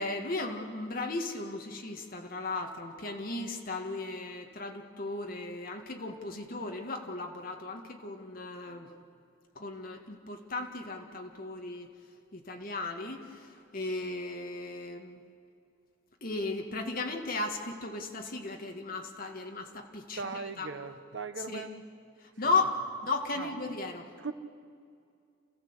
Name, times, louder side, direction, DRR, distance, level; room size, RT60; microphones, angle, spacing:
voice 1, 0.0-8.9 9.6-11.9 12.3-15.2 16.2-20.7 21.5-21.7 22.4-24.1, left 3 dB, 50° left, 3 dB, 1.9 m, -35 dB
voice 2, 20.2-21.8 23.4-23.5 24.2-24.3, right 4 dB, 70° right, 8 dB, 1.1 m, -38 dB
28.5 x 15.0 x 8.1 m, 2.4 s
head